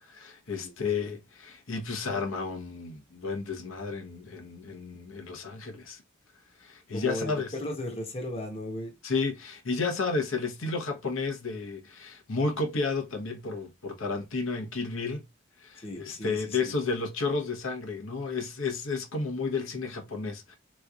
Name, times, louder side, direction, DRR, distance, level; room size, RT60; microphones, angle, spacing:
voice 1, 0.1-6.0 6.6-7.5 9.0-15.3 15.6-20.6, left 4 dB, 70° left, 0.9 m, -32 dB
voice 2, 6.9-8.9 15.8-16.7, left 1 dB, 30° left, 0.9 m, -36 dB
3.8 x 3.1 x 2.3 m
head